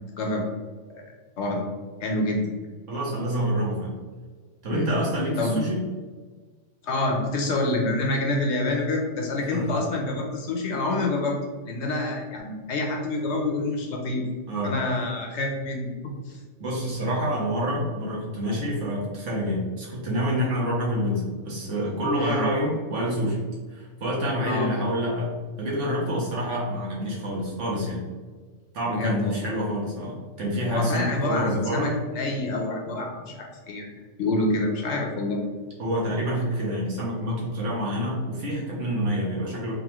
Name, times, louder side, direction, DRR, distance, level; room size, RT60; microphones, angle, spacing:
voice 1, 0.2-0.5 0.9-1.0 1.4-1.6 2.0-2.5 4.7-4.9 5.4-5.6 6.8-11.4 11.6-14.2 14.6-15.9 16.3-16.4 22.2-22.4 24.4-24.7 28.8-29.5 30.7-33.9 34.2-35.4, left 2 dB, 65° left, 1 dB, 1.0 m, -27 dB
voice 2, 2.9-3.9 4.6-5.8 9.5-9.7 14.5-14.8 16.6-23.4 23.7-28.0 28.7-32.0 35.8-39.7, equal, 65° right, -4 dB, 1.5 m, -27 dB
3.7 x 3.5 x 3.0 m, 1.4 s
omnidirectional pair, 1.3 m